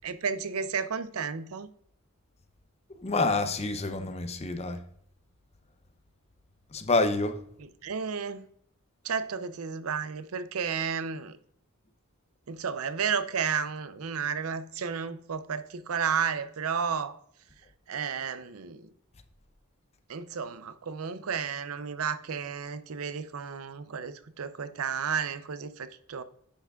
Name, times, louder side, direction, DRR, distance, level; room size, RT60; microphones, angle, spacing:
voice 1, 0.0-1.7 7.6-8.5 9.0-11.4 12.5-17.2 17.9-18.9 20.1-26.2, right 6 dB, 80° right, 0.6 m, -32 dB
voice 2, 2.9-4.8 6.7-7.4, left 3 dB, 30° left, 0.6 m, -27 dB
10.0 x 5.8 x 2.4 m
head